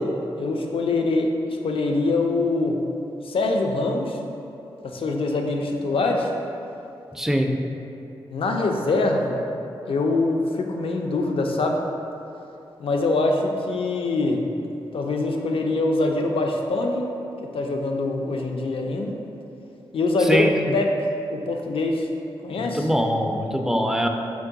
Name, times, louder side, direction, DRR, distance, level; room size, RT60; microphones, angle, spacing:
voice 1, 0.0-2.8 3.2-4.2 4.8-6.3 8.3-9.4 9.9-11.8 12.8-14.4 14.9-17.1 17.4-19.1 19.9-20.5 20.7-20.9 21.3-22.1 22.4-22.9, left 2 dB, 60° left, 2 dB, 0.4 m, -24 dB
voice 2, 7.2-7.5 20.3-20.5 22.6-24.1, equal, 5° right, 3 dB, 0.4 m, -22 dB
4.5 x 2.2 x 3.7 m, 2.8 s
supercardioid pair, 40°, 10 cm